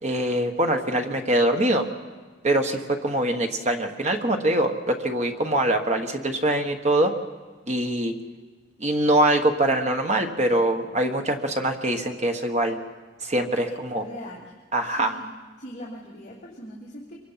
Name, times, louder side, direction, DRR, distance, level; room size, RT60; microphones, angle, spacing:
voice 1, 0.0-1.8 2.4-7.1 7.7-8.1 8.8-12.8 13.2-14.0 14.7-15.1, right 1 dB, 35° right, 4 dB, 1.4 m, -23 dB
voice 2, 13.9-14.5 14.8-15.3 15.6-17.1, equal, 40° left, -6 dB, 3.0 m, -40 dB
25.0 x 24.0 x 5.8 m, 1.4 s
head